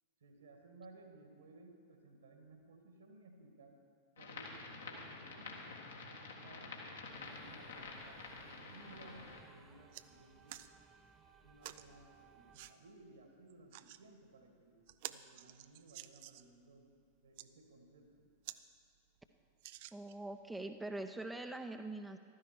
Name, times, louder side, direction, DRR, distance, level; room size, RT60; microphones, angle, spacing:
voice 1, 0.2-3.8 4.2-5.7 6.0-6.8 7.1-10.7 11.4-16.9 17.2-18.2, right 3 dB, 70° right, 4 dB, 2.0 m, -59 dB
sound 1, 4.2-9.4, left 3 dB, 70° left, 1.8 m, -49 dB
sound 2, 7.1-12.7, right 5 dB, 25° right, 1.2 m, -64 dB
sound 3, 9.9-10.1 10.5-10.7 11.6-11.9 12.5-12.7 13.5-14.0 14.5-14.6 14.9-16.5 17.2-17.5 18.0-18.1 18.4-18.6 19.0-19.1 19.6-20.3 21.0-21.1, right 15 dB, 50° right, 0.4 m, -50 dB
voice 2, 19.9-22.2, right 2 dB, 5° right, 5 dB, 0.6 m, -43 dB
14.5 x 13.0 x 4.6 m, 2.2 s
figure-of-eight pair, 90°, 0 cm